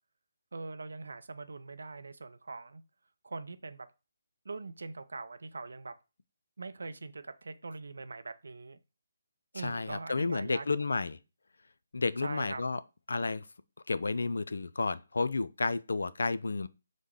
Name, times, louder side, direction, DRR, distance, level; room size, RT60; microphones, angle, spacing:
voice 1, 0.5-2.8 3.2-3.9 4.4-5.9 6.6-8.8 9.5-10.7 12.2-12.6, right 3 dB, 65° right, 0.5 m, -42 dB
voice 2, 9.5-11.2 11.9-12.8 13.1-13.5 13.9-16.7, left 3 dB, 70° left, 0.3 m, -31 dB
6.2 x 2.1 x 3.5 m
figure-of-eight pair, 145°, 0 cm